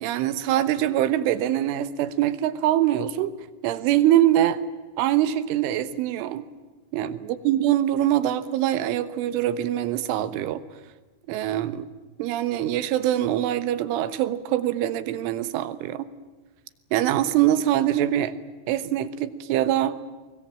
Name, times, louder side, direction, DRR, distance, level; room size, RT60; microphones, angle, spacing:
voice 1, 0.0-3.3 3.6-4.6 5.0-6.4 6.9-10.6 11.3-11.9 12.2-16.1 16.9-18.3 18.7-20.0, right 12 dB, 85° right, 13 dB, 3.7 m, -23 dB
24.0 x 21.5 x 8.8 m, 1.3 s
omnidirectional pair, 5.5 m